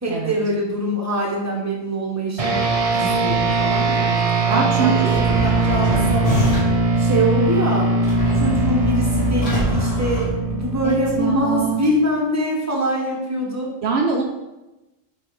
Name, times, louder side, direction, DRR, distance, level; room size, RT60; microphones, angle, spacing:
voice 1, 0.0-2.6 2.9-6.4 7.0-7.9 8.3-13.7, equal, 15° right, -2 dB, 1.1 m, -24 dB
sound 1, 2.4-12.1, right 4 dB, 35° right, 0.7 m, -21 dB
voice 2, 4.5-5.2 10.8-11.8 13.8-14.2, right 5 dB, 70° right, 1 dB, 0.9 m, -22 dB
sound 2, 5.1-6.9 8.0-10.9, left 1 dB, 65° left, 2.1 m, -25 dB
6.2 x 3.3 x 4.7 m, 1.0 s
omnidirectional pair, 1.2 m